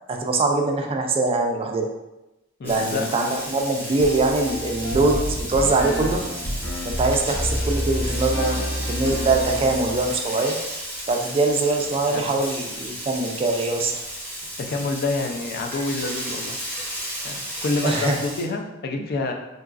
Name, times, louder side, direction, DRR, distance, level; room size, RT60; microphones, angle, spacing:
voice 1, 0.1-1.9 2.6-6.2 6.9-10.6 11.1-13.9 17.8-18.2 19.0-19.1, right 3 dB, 30° right, 2 dB, 0.3 m, -23 dB
voice 2, 2.6-3.1 7.0-7.2 12.1-12.4 14.6-16.6 17.2-19.3, left 3 dB, 50° left, 3 dB, 0.4 m, -28 dB
Frying (food), 2.6-18.4, equal, 10° left, 0.7 m, -34 dB
sound 1, 4.0-10.1, equal, 85° left, 1.1 m, -29 dB
3.8 x 2.3 x 2.4 m, 0.97 s
head